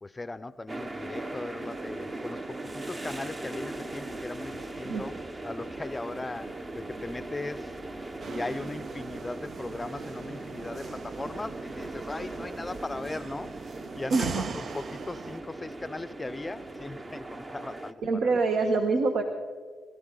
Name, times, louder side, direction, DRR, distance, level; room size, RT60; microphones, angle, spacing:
voice 1, 0.0-5.1 5.4-7.7 8.2-18.4, left 2 dB, 20° left, 0.5 m, -38 dB
sound 1, 0.7-17.9, right 2 dB, 25° right, 0.8 m, -39 dB
sound 2, 8.2-15.4, right 5 dB, 45° right, 0.4 m, -42 dB
voice 2, 14.1-14.5 18.0-19.2, right 3 dB, 70° right, 1.2 m, -25 dB
22.5 x 13.5 x 3.9 m
cardioid pair, 90°, 0 cm